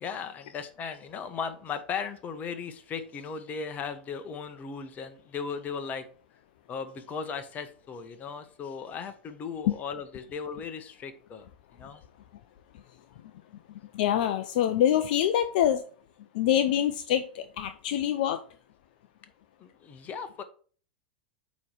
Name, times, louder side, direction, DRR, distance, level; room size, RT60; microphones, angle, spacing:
voice 1, 0.0-6.1 6.7-11.4 11.7-12.0 19.6-20.4, left 6 dB, 30° left, 1.0 m, -37 dB
voice 2, 13.9-15.9 16.3-18.4, left 10 dB, 60° left, 0.5 m, -25 dB
8.3 x 3.1 x 4.8 m
figure-of-eight pair, 90°, 5 cm